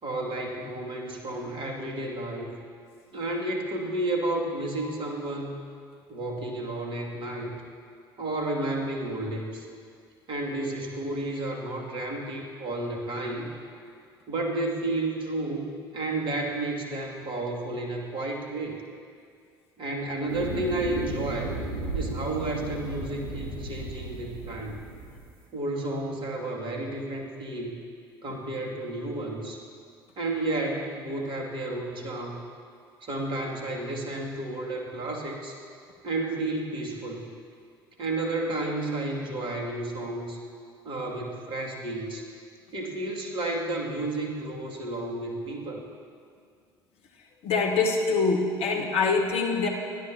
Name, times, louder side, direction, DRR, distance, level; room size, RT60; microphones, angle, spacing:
voice 1, 0.0-2.6 3.1-5.6 6.1-7.6 8.2-9.7 10.3-13.5 14.3-18.8 19.8-21.5 21.9-24.8 25.5-27.8 28.2-29.6 30.2-32.4 33.0-35.6 36.0-37.3 38.0-40.4 40.8-42.3 42.7-45.8, right 2 dB, 40° right, -1 dB, 2.6 m, -31 dB
sound 1, 20.3-25.3, right 2 dB, 75° right, 3.5 m, -35 dB
voice 2, 47.4-49.7, left 4 dB, 55° left, 0 dB, 1.5 m, -24 dB
29.0 x 12.0 x 2.9 m, 2.2 s
figure-of-eight pair, 55°, 12 cm